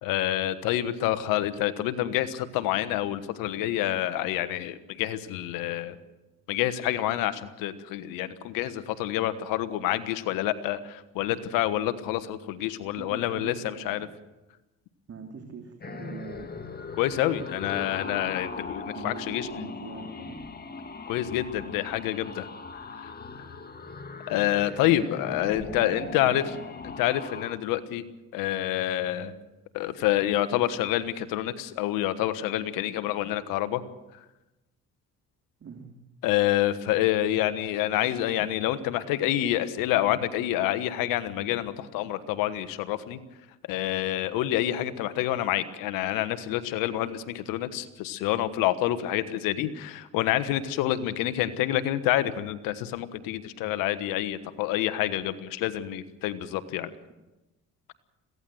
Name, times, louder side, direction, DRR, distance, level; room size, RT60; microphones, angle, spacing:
voice 1, 0.0-6.0 6.5-14.1 17.0-19.7 21.1-22.5 22.7-23.6 24.3-26.4 26.8-28.0 28.3-29.4 29.7-33.8 36.2-43.2 43.7-56.9, left 13 dB, 85° left, 12 dB, 1.3 m, -28 dB
voice 2, 13.0-14.0 15.1-16.5 18.9-20.4 24.8-26.4 35.6-35.9, right 5 dB, 45° right, 3 dB, 3.1 m, -42 dB
sound 1, 15.8-27.6, left 4 dB, 30° left, 1.9 m, -40 dB
22.0 x 16.5 x 7.8 m, 1.0 s
supercardioid pair, 70°, 33 cm